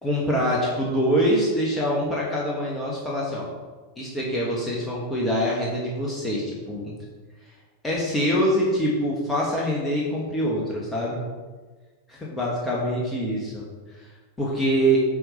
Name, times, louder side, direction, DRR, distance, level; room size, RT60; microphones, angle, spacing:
voice 1, 0.0-3.5 4.0-7.0 7.8-11.2 12.1-13.6 14.0-14.1 14.4-15.0, equal, 10° left, -4 dB, 1.8 m, -24 dB
8.7 x 4.8 x 5.1 m, 1.4 s
figure-of-eight pair, 90°, 0 cm